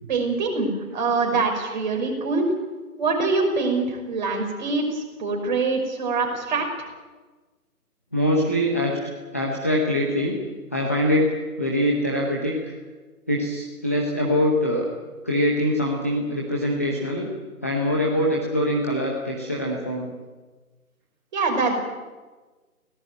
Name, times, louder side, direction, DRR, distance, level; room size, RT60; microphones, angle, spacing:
voice 1, 0.1-2.5 3.0-6.9 21.3-21.8, right 3 dB, 30° right, 1 dB, 5.7 m, -24 dB
voice 2, 8.1-9.0 9.3-10.4 10.7-11.3 11.6-12.7 13.3-14.9 15.2-17.3 17.6-20.1, equal, 10° left, -2 dB, 0.9 m, -23 dB
23.5 x 18.0 x 9.2 m, 1.3 s
figure-of-eight pair, 165°, 45 cm